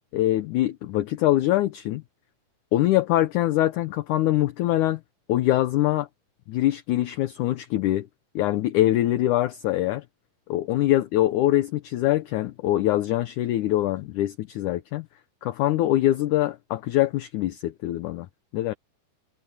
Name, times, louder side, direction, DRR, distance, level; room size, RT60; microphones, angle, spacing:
voice 1, 0.1-2.0 2.7-5.0 5.3-6.1 6.5-8.1 8.4-10.0 10.5-15.1 15.4-18.3 18.5-18.7, left 14 dB, 75° left, 2.0 m, -23 dB
omnidirectional pair, 4.3 m